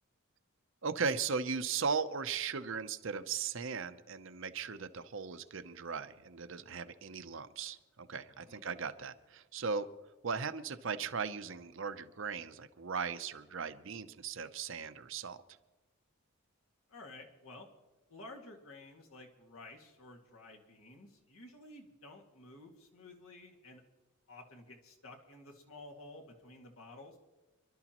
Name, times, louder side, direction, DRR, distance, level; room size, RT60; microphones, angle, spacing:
voice 1, 0.8-9.9 10.2-15.4, right 5 dB, 60° right, 11 dB, 0.7 m, -37 dB
voice 2, 16.9-17.7 18.1-23.8 24.3-27.2, left 2 dB, 75° left, 1 dB, 2.1 m, -53 dB
27.0 x 12.0 x 3.0 m, 1.1 s
head